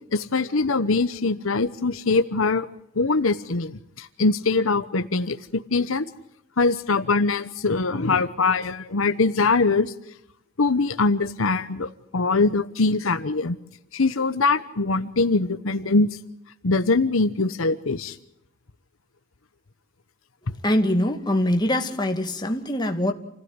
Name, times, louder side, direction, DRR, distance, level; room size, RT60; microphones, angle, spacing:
voice 1, 0.1-2.7 2.9-6.1 6.6-9.9 10.6-13.6 13.9-16.1 16.6-18.2, left 3 dB, 75° left, 1.0 m, -22 dB
voice 2, 20.6-23.1, left 1 dB, 20° left, 2.3 m, -23 dB
28.5 x 16.5 x 9.7 m
head